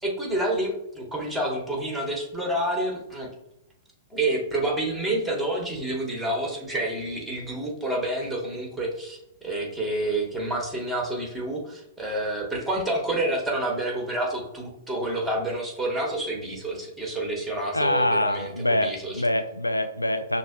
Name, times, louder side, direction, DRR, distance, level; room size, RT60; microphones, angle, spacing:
voice 1, 0.0-3.3 4.1-19.2, right 1 dB, ahead, -1 dB, 1.2 m, -28 dB
voice 2, 17.7-20.4, left 1 dB, 90° left, 9 dB, 0.4 m, -25 dB
5.9 x 2.6 x 2.2 m, 0.84 s
figure-of-eight pair, 105°, 0 cm